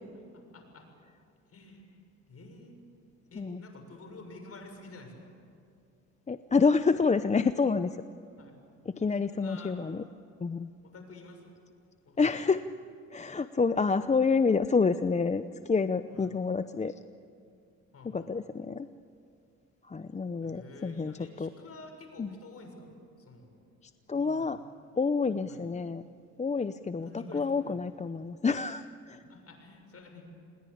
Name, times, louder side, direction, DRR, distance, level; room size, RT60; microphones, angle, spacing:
voice 1, 0.3-0.9 1.5-2.0 2.3-2.8 3.3-5.1 8.4-8.6 9.2-9.8 10.8-11.5 12.1-12.3 16.1-16.3 17.9-18.3 20.4-22.9 23.2-23.5 24.1-24.6 25.5-25.6 27.0-27.8 29.3-30.2, left 2 dB, 50° left, 4 dB, 6.9 m, -49 dB
voice 2, 6.3-8.0 8.8-10.0 10.4-10.7 12.2-12.7 13.1-16.9 18.0-18.9 19.8-21.5 22.2-22.4 23.8-24.6 25.0-26.0 26.4-29.2, left 4 dB, 25° left, 11 dB, 0.7 m, -28 dB
28.0 x 21.0 x 8.7 m, 2.4 s
cardioid pair, 90°, 30 cm